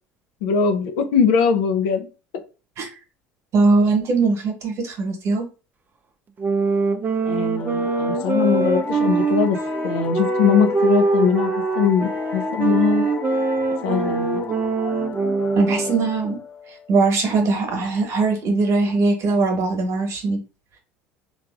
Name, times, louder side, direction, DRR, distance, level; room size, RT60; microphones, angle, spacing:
voice 1, 0.4-2.1 7.3-9.6 9.8-13.1 13.8-14.4, left 6 dB, 70° left, 6 dB, 0.6 m, -21 dB
voice 2, 3.5-5.4 15.6-16.4 16.9-20.4, right 3 dB, 50° right, 4 dB, 1.1 m, -20 dB
sound 1, 6.4-16.1, right 4 dB, 30° right, 0.5 m, -23 dB
sound 2, 7.6-17.0, left 6 dB, 30° left, 0.6 m, -32 dB
3.2 x 2.5 x 2.4 m, 0.32 s
hypercardioid pair, 70°, 6 cm